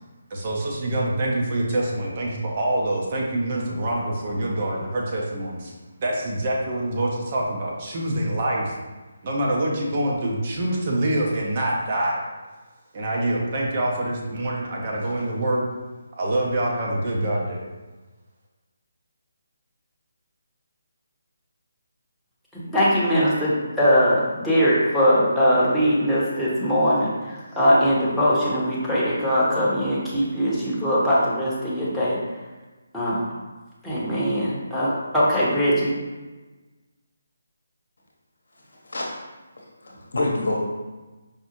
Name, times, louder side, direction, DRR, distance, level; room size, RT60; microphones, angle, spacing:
voice 1, 0.3-5.7 6.0-8.7 9.2-12.2 12.9-15.6 16.2-17.6, right 1 dB, 40° right, -3 dB, 0.7 m, -25 dB
voice 2, 22.5-32.2 32.9-33.2 33.8-35.9, equal, ahead, -11 dB, 0.8 m, -21 dB
voice 3, 38.8-39.2 39.8-40.6, left 2 dB, 65° left, -2 dB, 0.8 m, -26 dB
4.9 x 2.0 x 2.9 m, 1.2 s
figure-of-eight pair, 150°, 0 cm